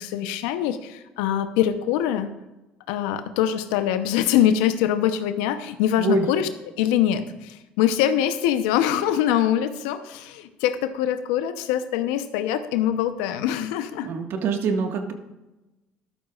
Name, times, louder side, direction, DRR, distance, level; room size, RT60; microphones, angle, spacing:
voice 1, 0.0-2.3 2.9-6.5 6.8-14.1, left 10 dB, 85° left, 10 dB, 0.8 m, -23 dB
voice 2, 14.0-15.1, right 4 dB, 65° right, 5 dB, 1.6 m, -24 dB
13.0 x 12.0 x 2.4 m, 1.0 s
hypercardioid pair, 65°, 4 cm